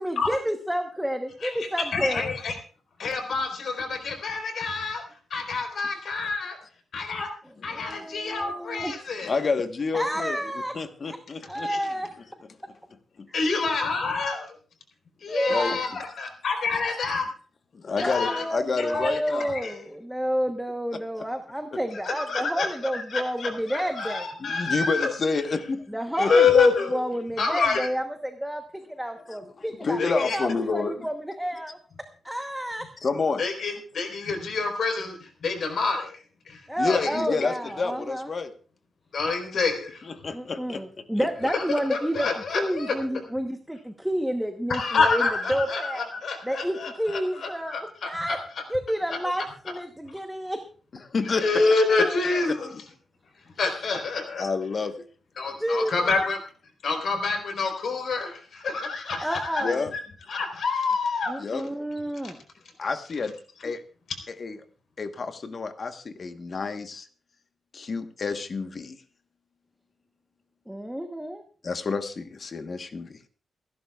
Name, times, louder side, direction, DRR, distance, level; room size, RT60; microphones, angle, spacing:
voice 1, 0.0-2.2 7.7-8.9 9.9-10.7 11.1-11.2 11.5-12.1 15.3-15.8 18.0-24.3 25.9-28.6 28.9-31.8 32.2-32.8 36.7-38.3 40.3-42.3 42.5-46.1 46.4-47.8 48.1-48.4 48.7-50.6 52.0-52.4 55.6-56.2 59.2-59.8 61.3-62.4 70.7-71.4, equal, 5° right, 5 dB, 1.0 m, -30 dB
voice 2, 1.4-2.6 3.0-5.0 5.3-6.6 6.9-7.3 7.6-9.3 11.7-11.8 13.3-14.5 15.2-17.3 18.0-18.4 18.8-19.8 22.0-25.1 26.2-27.1 27.4-27.9 30.0-30.4 33.4-37.2 39.1-40.1 41.5-43.2 44.7-48.4 51.4-52.7 53.6-54.4 55.4-56.4 56.8-60.0 60.3-61.3 62.2-62.3, left 4 dB, 60° left, 4 dB, 4.0 m, -27 dB
voice 3, 7.7-8.0 9.2-10.4 10.7-11.7 13.2-13.3 15.5-15.8 16.7-17.0 17.7-19.5 20.9-21.0 21.7-21.8 24.4-25.9 26.2-26.3 29.3-31.1 33.0-33.4 36.8-38.5 40.0-40.8 41.2-41.3 51.1-51.7 52.5-52.6 54.4-55.0 59.6-59.9 61.4-61.6 62.8-63.3 63.6-63.8 64.3-64.6 65.0-67.1 67.7-69.0 71.6-73.2, left 4 dB, 40° left, 7 dB, 1.2 m, -29 dB
29.0 x 11.0 x 2.4 m, 0.41 s
wide cardioid pair, 150°, 0 cm